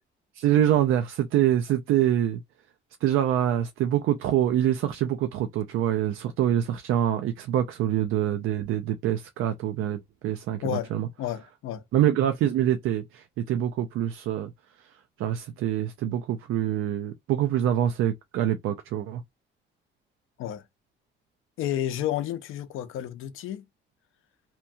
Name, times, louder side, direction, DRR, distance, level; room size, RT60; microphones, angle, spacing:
voice 1, 0.3-2.4 3.0-11.1 11.9-14.5 15.2-19.2, right 11 dB, 80° right, 0.5 m, -25 dB
voice 2, 11.2-11.8 20.4-20.6 21.6-23.6, left 11 dB, 80° left, 0.5 m, -31 dB
2.9 x 2.3 x 2.6 m
cardioid pair, 125°, 21 cm